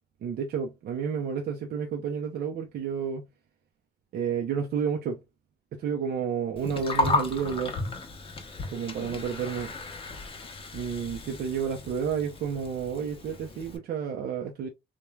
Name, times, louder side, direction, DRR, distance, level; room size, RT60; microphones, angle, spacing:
voice 1, 0.2-3.3 4.1-5.2 5.7-7.8 8.7-9.7 10.7-14.7, right 7 dB, 60° right, 0.5 m, -31 dB
Gurgling, 6.6-13.8, left 2 dB, 30° left, 0.7 m, -34 dB
3.0 x 2.2 x 2.3 m
cardioid pair, 125°, 18 cm